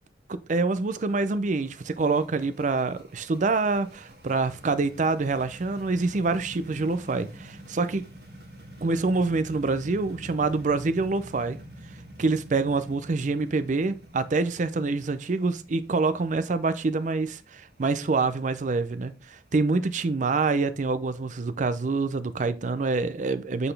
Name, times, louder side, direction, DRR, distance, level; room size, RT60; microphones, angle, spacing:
voice 1, 0.3-8.0 8.8-11.6 12.2-23.7, right 3 dB, 45° right, 0.5 m, -26 dB
sound 1, 0.7-19.5, right 1 dB, 65° right, 1.6 m, -47 dB
7.7 x 4.0 x 3.3 m
head